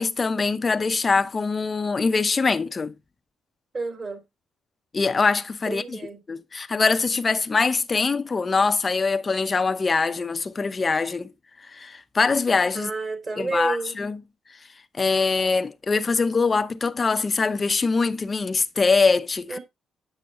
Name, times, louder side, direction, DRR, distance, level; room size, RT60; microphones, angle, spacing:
voice 1, 0.0-2.9 4.9-6.0 6.3-11.3 11.7-12.9 13.4-14.2 15.0-19.6, left 4 dB, 30° left, 0.7 m, -23 dB
voice 2, 3.7-4.2 5.7-6.2 12.7-13.9 19.5-19.6, right 3 dB, 35° right, 2.9 m, -30 dB
8.6 x 6.5 x 3.0 m
cardioid pair, 90°, 0 cm